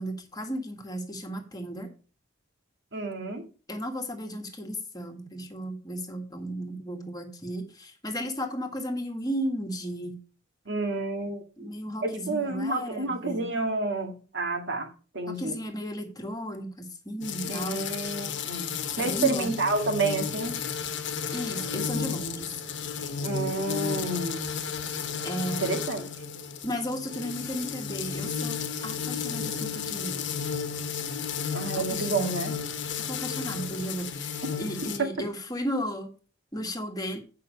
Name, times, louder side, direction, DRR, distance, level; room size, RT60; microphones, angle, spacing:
voice 1, 0.0-1.9 3.7-10.2 11.6-13.4 15.4-17.8 19.0-19.5 21.3-22.5 25.2-25.7 26.6-30.3 31.7-32.4 33.0-36.1 36.5-37.2, equal, 20° left, 1.7 m, -34 dB
voice 2, 2.9-3.5 10.7-11.7 12.0-14.9 15.1-15.6 17.4-20.6 23.2-24.5 25.6-26.0 31.5-32.6 34.8-35.1, right 3 dB, 65° right, 2.0 m, -30 dB
Killer Bee Attack, 17.2-35.0, left 6 dB, 65° left, 1.2 m, -33 dB
9.2 x 5.7 x 5.4 m
head